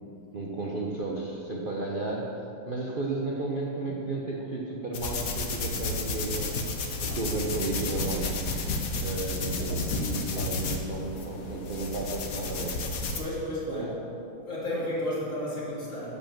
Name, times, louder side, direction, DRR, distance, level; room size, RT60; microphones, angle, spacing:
voice 1, 0.3-2.3 2.7-6.5 7.0-8.4 9.0-12.7 13.7-14.0, right 2 dB, 65° right, -3 dB, 0.5 m, -33 dB
sound 1, 4.9-13.2, left 2 dB, 50° left, 1.1 m, -32 dB
voice 2, 13.2-14.0 14.5-16.2, left 1 dB, 35° left, -7 dB, 3.3 m, -32 dB
11.0 x 5.4 x 7.4 m, 2.7 s
omnidirectional pair, 2.4 m